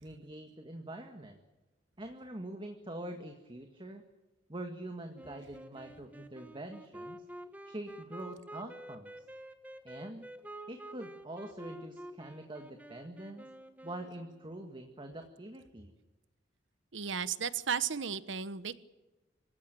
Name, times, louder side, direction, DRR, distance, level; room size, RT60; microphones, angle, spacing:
voice 1, 0.0-1.4 2.0-4.0 4.5-7.2 7.7-9.1 9.8-10.3 10.7-13.5 13.8-15.9, right 1 dB, 25° right, 5 dB, 1.8 m, -44 dB
Wind instrument woodwind instrument, 5.1-14.6, right 1 dB, 10° right, 1.4 m, -49 dB
voice 2, 16.9-18.8, right 7 dB, 70° right, 15 dB, 1.1 m, -34 dB
26.5 x 16.0 x 9.2 m, 1.1 s
head